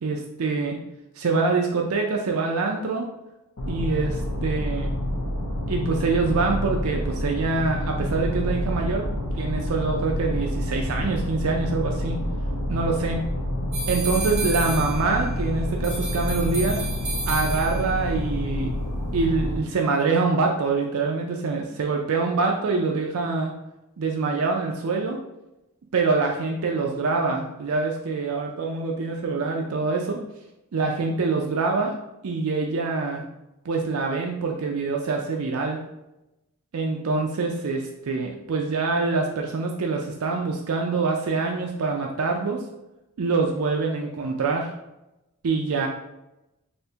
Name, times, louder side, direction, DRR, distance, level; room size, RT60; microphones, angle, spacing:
voice 1, 0.0-0.8 1.2-3.1 3.7-4.9 5.7-9.0 9.3-12.2 12.7-13.2 13.9-16.8 17.3-18.7 19.1-23.5 24.0-25.2 25.9-30.2 30.7-31.9 32.2-33.2 33.6-35.8 36.7-42.6 43.2-44.7 45.4-45.9, right 4 dB, 70° right, 1 dB, 0.4 m, -25 dB
sound 1, 3.6-19.6, left 1 dB, 85° left, 0.7 m, -28 dB
Bass guitar, 8.0-17.7, equal, 25° left, 0.3 m, -40 dB
sound 2, 13.7-15.4 15.8-18.0, right 1 dB, 35° right, 0.7 m, -32 dB
3.4 x 2.8 x 2.7 m, 0.92 s
head